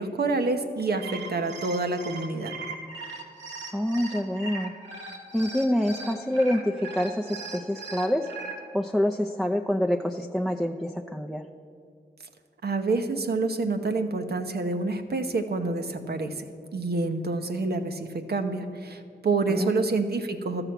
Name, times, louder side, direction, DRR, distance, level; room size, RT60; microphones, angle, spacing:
voice 1, 0.0-2.5 12.6-16.3 16.7-20.6, right 3 dB, 65° right, 6 dB, 0.9 m, -27 dB
sound 1, 0.8-8.5, right 3 dB, 85° right, 1.4 m, -39 dB
voice 2, 3.7-4.7 5.3-8.3 8.7-11.4 19.5-19.8, equal, ahead, 3 dB, 0.5 m, -26 dB
13.0 x 6.9 x 5.9 m, 2.4 s
cardioid pair, 45°, 18 cm